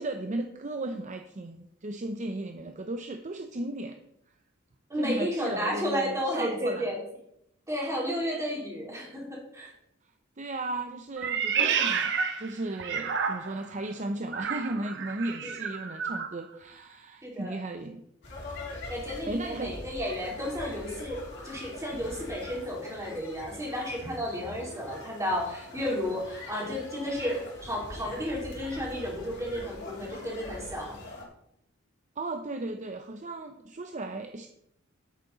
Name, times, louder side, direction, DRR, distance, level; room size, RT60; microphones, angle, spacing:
voice 1, 0.0-4.0 5.0-6.9 10.4-18.0 19.3-19.8 32.2-34.5, right 2 dB, 35° right, 6 dB, 0.7 m, -35 dB
voice 2, 4.9-7.0 7.7-9.7 15.4-15.6 17.2-17.6 18.9-21.2 21.4-31.0, equal, 15° right, -2 dB, 3.3 m, -32 dB
Meow, 11.2-13.7 14.3-16.3, right 6 dB, 60° right, 1.1 m, -30 dB
sound 1, 18.2-31.2, left 2 dB, 60° left, 3.1 m, -43 dB
10.5 x 8.8 x 4.0 m, 0.77 s
head